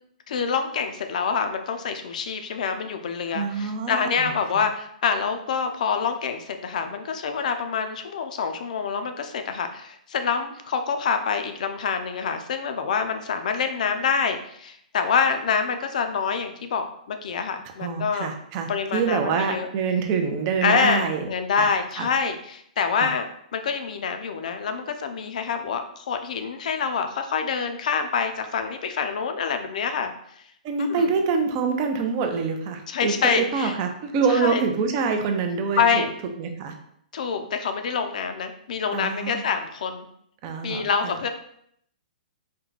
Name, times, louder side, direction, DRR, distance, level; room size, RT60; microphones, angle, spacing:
voice 1, 0.3-18.3 18.7-19.7 20.6-23.3 23.5-30.4 30.8-31.1 32.9-33.7 34.3-34.6 35.8-36.1 37.1-40.1 40.6-41.3, left 6 dB, 60° left, 7 dB, 0.5 m, -26 dB
voice 2, 3.3-4.3 17.8-21.2 21.6-21.7 22.0-22.1 23.0-23.1 30.6-36.1 36.4-36.8 38.9-39.5 40.4-41.1, right 5 dB, 30° right, 4 dB, 0.5 m, -26 dB
4.4 x 2.2 x 3.9 m, 0.70 s
hypercardioid pair, 165°, 5 cm